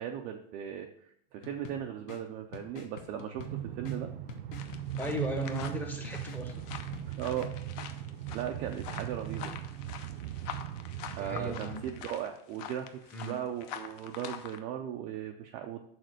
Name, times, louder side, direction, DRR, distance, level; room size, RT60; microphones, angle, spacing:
voice 1, 0.0-4.1 7.1-7.5 8.3-9.5 11.2-15.9, right 9 dB, 25° right, 3 dB, 0.4 m, -38 dB
sound 1, 1.4-7.5, left 7 dB, 65° left, 1.2 m, -49 dB
Train, 3.4-12.2, right 12 dB, 70° right, 0.5 m, -39 dB
sound 2, 4.6-14.6, left 8 dB, 45° left, 0.7 m, -45 dB
voice 2, 5.0-6.6 11.2-11.8 13.1-13.3, equal, 5° left, 3 dB, 0.8 m, -36 dB
6.6 x 4.2 x 6.4 m, 0.71 s
supercardioid pair, 160°, 29 cm